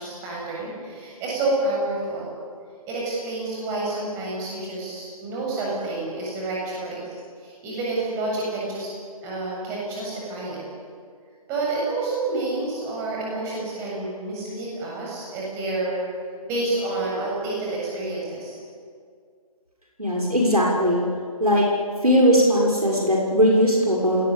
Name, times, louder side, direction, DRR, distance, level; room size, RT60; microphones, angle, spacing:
voice 1, 0.0-2.3 2.9-7.1 7.4-8.9 9.2-10.6 11.5-16.0 16.4-18.6, right 2 dB, 15° right, -4 dB, 7.6 m, -29 dB
voice 2, 20.0-21.0 21.4-21.6 22.0-24.2, equal, 85° right, -2 dB, 6.5 m, -19 dB
28.5 x 19.5 x 8.7 m, 2.1 s
figure-of-eight pair, 145°, 19 cm